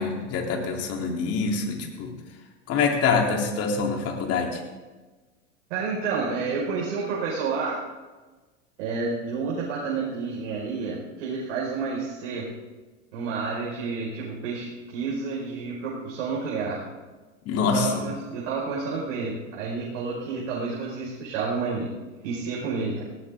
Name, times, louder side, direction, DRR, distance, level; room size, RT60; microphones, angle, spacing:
voice 1, 0.0-2.1 2.7-4.6 17.4-17.9, left 5 dB, 40° left, 1 dB, 3.5 m, -25 dB
voice 2, 5.7-7.8 8.8-12.5 13.1-16.8 17.7-21.9 22.2-23.0, right 4 dB, 65° right, -6 dB, 5.4 m, -30 dB
18.5 x 18.0 x 3.8 m, 1.3 s
hypercardioid pair, 105°, 38 cm